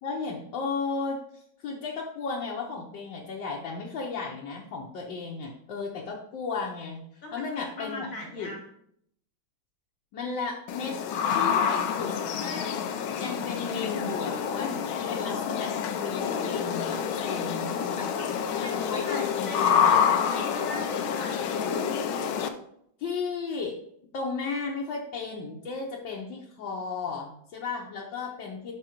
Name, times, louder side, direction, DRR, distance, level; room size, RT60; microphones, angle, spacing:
voice 1, 0.0-7.0 7.3-8.1 8.3-8.5 10.1-11.0 11.3-12.7 13.2-18.1 18.8-20.2 23.0-23.8 24.1-28.7, left 4 dB, 70° left, -2 dB, 1.5 m, -34 dB
voice 2, 7.2-8.6 18.1-18.2 18.6-22.1, left 2 dB, 50° left, 0 dB, 1.3 m, -39 dB
sound 1, 10.7-22.5, left 7 dB, 90° left, 1.5 m, -28 dB
6.0 x 4.9 x 4.4 m, 0.70 s
omnidirectional pair, 2.1 m